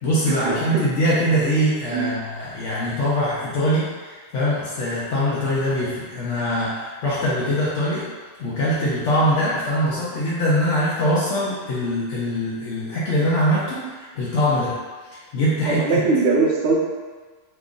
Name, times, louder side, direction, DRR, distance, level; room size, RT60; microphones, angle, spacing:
voice 1, 0.0-8.0 8.4-14.7 15.1-16.0, equal, 80° left, -8 dB, 1.0 m, -22 dB
voice 2, 15.7-16.8, right 3 dB, 70° right, -2 dB, 0.9 m, -21 dB
2.9 x 2.5 x 3.6 m, 1.4 s
omnidirectional pair, 1.2 m